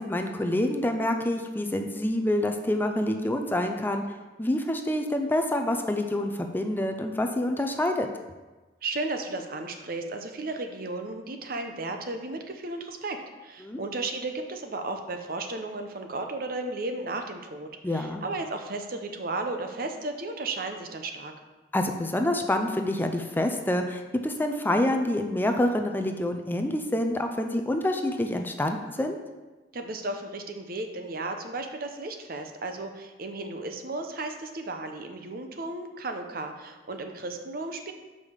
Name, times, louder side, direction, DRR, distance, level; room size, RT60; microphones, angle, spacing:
voice 1, 0.0-4.0 4.4-8.1 13.6-13.8 17.8-18.2 21.7-29.2, left 1 dB, 10° left, 5 dB, 0.4 m, -27 dB
voice 2, 8.8-21.3 29.7-37.9, right 2 dB, 55° right, 5 dB, 0.7 m, -34 dB
5.5 x 4.9 x 6.4 m, 1.2 s
head